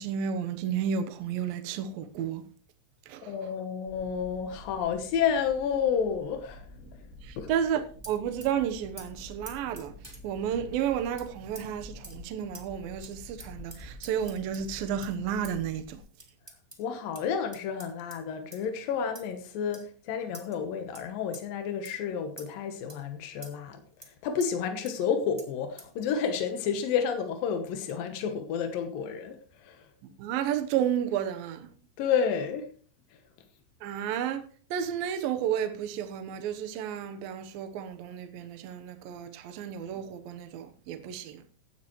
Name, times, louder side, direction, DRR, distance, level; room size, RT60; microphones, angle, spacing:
voice 1, 0.0-2.4 3.1-3.5 7.2-9.9 10.2-16.0 30.2-31.7 33.8-34.4 34.7-41.4, right 9 dB, 85° right, 2.0 m, -32 dB
voice 2, 3.3-6.7 7.4-7.5 16.8-23.8 24.1-29.9 32.0-32.7, left 7 dB, 75° left, 2.1 m, -30 dB
sound 1, 3.9-16.0, left 1 dB, ahead, 3.5 m, -49 dB
sound 2, 8.0-8.5 9.0-9.1 9.4-10.2 11.2-11.3 11.5-11.6 12.0-12.2 12.5-12.6 13.0-13.1 13.4-14.7 15.0-15.1 15.4-15.5 16.2-16.8 17.1-17.2 17.5-18.2 18.5-18.7 19.1-19.3 19.7-19.8 20.3-20.6 20.9-21.0 21.3-21.4 21.8-21.9 22.4-22.5 22.9-23.0 23.4-23.5 24.0-24.1 24.4-24.5 24.8-25.0 25.4-25.5 25.8-25.9, right 1 dB, 30° right, 0.4 m, -46 dB
16.0 x 12.0 x 3.1 m
omnidirectional pair, 5.8 m